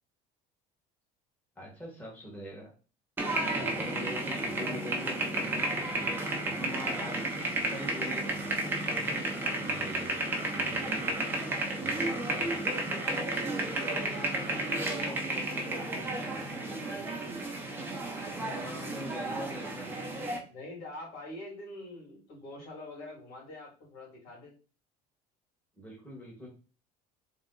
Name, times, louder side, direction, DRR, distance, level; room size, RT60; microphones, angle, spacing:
voice 1, 1.6-2.7 3.3-7.2 7.5-11.2 11.8-12.6 14.0-17.2 18.2-19.9 25.8-26.5, equal, 10° left, -4 dB, 1.9 m, -44 dB
sound 1, 3.2-20.4, right 2 dB, 15° right, 0.9 m, -32 dB
voice 2, 3.3-4.7 10.9-11.3 11.7-12.8 13.2-14.1 18.0-18.3 20.5-24.5, left 2 dB, 75° left, -2 dB, 2.7 m, -47 dB
3.7 x 3.4 x 4.0 m, 0.35 s
cardioid pair, 145°, 16 cm